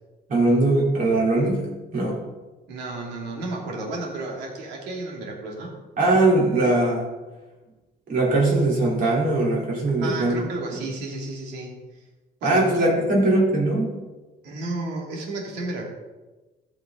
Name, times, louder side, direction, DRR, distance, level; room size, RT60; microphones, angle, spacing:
voice 1, 0.3-2.2 6.0-7.1 8.1-10.4 12.4-13.9, right 2 dB, 55° right, -4 dB, 3.6 m, -21 dB
voice 2, 2.7-5.7 10.0-12.0 12.4-12.6 14.4-15.9, right 2 dB, 85° right, -1 dB, 2.7 m, -32 dB
14.5 x 5.9 x 3.9 m, 1.2 s
cardioid pair, 110°, 17 cm